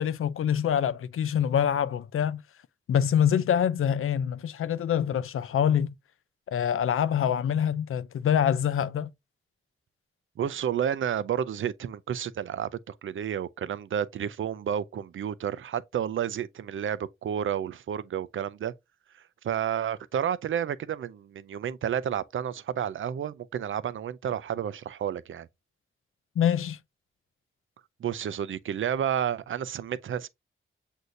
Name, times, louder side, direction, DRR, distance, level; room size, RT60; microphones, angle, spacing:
voice 1, 0.0-2.4 2.9-5.9 6.5-9.1 26.4-26.8, left 9 dB, 80° left, 0.4 m, -25 dB
voice 2, 10.4-18.7 19.4-25.5 28.0-30.3, right 9 dB, 70° right, 0.4 m, -31 dB
7.9 x 2.7 x 2.5 m
wide cardioid pair, 155°, 21 cm